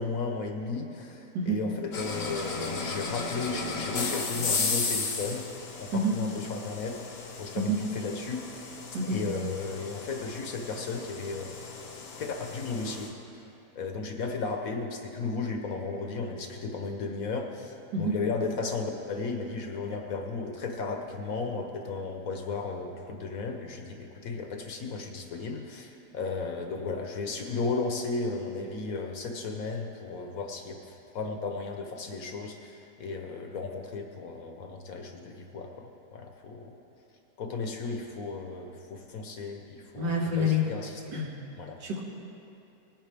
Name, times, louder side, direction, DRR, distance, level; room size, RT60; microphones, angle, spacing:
voice 1, 0.0-5.5 5.8-7.0 7.4-8.4 9.0-11.7 12.2-13.4 13.7-36.8 37.4-41.2 41.5-41.8, left 4 dB, 60° left, 3 dB, 1.2 m, -35 dB
sound 1, 1.9-13.1, left 4 dB, 85° left, 1.7 m, -35 dB
voice 2, 39.9-40.6 41.1-41.3 41.8-42.0, left 1 dB, 80° right, -1 dB, 2.0 m, -27 dB
18.5 x 9.0 x 3.4 m, 2.8 s
omnidirectional pair, 1.8 m